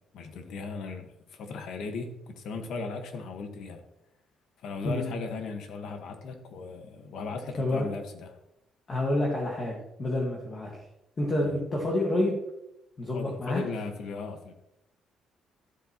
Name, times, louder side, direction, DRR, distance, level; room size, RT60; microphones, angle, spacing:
voice 1, 0.1-3.9 4.6-8.4 11.4-11.6 13.1-14.5, left 4 dB, 60° left, 6 dB, 1.4 m, -37 dB
voice 2, 7.6-7.9 8.9-10.7 11.2-12.4 13.0-13.7, left 1 dB, 25° left, -2 dB, 1.6 m, -28 dB
13.0 x 7.8 x 2.9 m, 0.86 s
cardioid pair, 170°, 0 cm